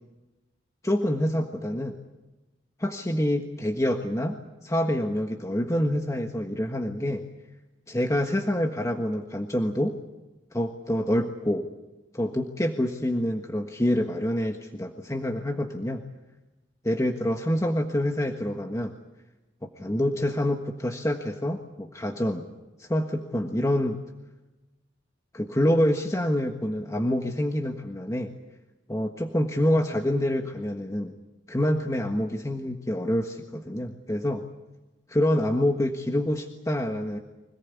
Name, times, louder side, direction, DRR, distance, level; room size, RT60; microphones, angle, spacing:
voice 1, 0.8-2.0 2.8-7.2 7.9-10.0 10.5-11.7 12.1-16.0 16.8-18.9 19.8-22.5 22.8-24.0 25.3-28.3 28.9-31.1 31.5-34.4 35.1-37.2, left 1 dB, 15° left, 3 dB, 1.5 m, -26 dB
25.5 x 18.5 x 8.5 m, 1.1 s
head